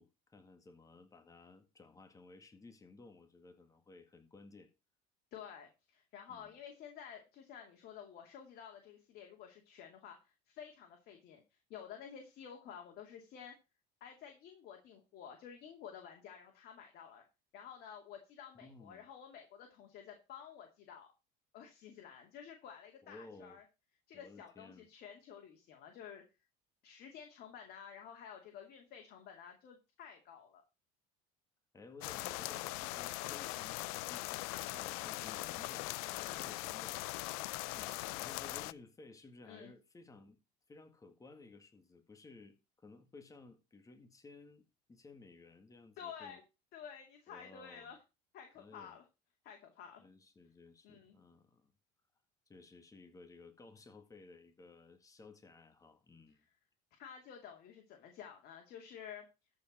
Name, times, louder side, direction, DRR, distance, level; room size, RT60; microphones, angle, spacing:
voice 1, 0.0-4.7 6.3-6.6 18.5-19.1 23.0-23.6 24.1-24.9 31.7-33.8 34.1-37.1 37.7-40.4 40.7-46.4 47.3-47.9 48.6-49.0 50.0-51.7 52.5-56.4, left 3 dB, 20° left, 1.8 m, -57 dB
voice 2, 5.3-11.4 11.7-13.5 14.0-17.2 17.5-21.1 21.5-23.6 24.1-26.2 26.8-30.6 35.1-35.4 36.1-36.4 39.4-39.7 46.0-46.4 46.7-48.0 48.3-49.0 49.4-50.0 50.8-51.1 57.0-59.3, left 8 dB, 55° left, 2.5 m, -51 dB
sound 1, 32.0-38.7, left 21 dB, 85° left, 0.5 m, -41 dB
13.5 x 4.8 x 6.1 m
supercardioid pair, 115°, 19 cm